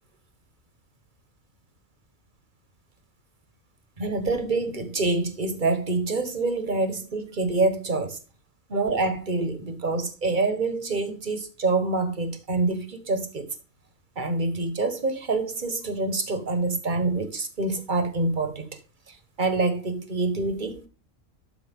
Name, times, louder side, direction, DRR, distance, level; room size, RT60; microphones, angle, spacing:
voice 1, 4.0-8.2 8.7-13.5 14.2-18.8 19.1-20.9, right 3 dB, 40° right, 1.6 m, -26 dB
12.5 x 4.9 x 3.6 m
omnidirectional pair, 1.4 m